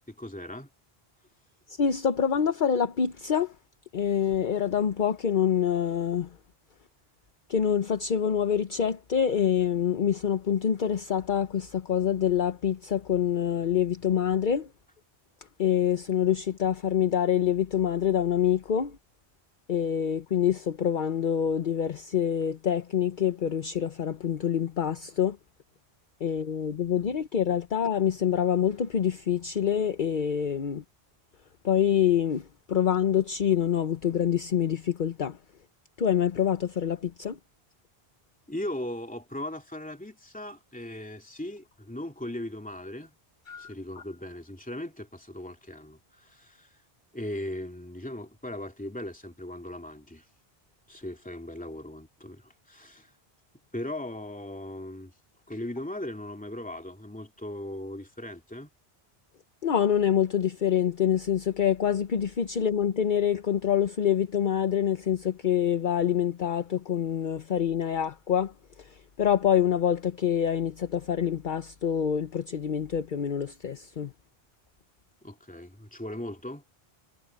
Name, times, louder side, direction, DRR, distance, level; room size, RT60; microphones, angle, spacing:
voice 1, 0.1-0.7 38.5-43.2 43.6-46.8 47.1-50.2 50.9-53.1 53.7-55.1 55.5-58.7 75.2-76.6, left 1 dB, 10° left, 2.6 m, -38 dB
voice 2, 1.7-3.6 3.9-6.4 7.5-14.7 15.6-19.0 19.7-25.4 26.2-30.8 31.6-35.4 36.0-37.4 43.5-43.7 59.6-74.1, left 9 dB, 55° left, 1.0 m, -26 dB
omnidirectional pair, 1.0 m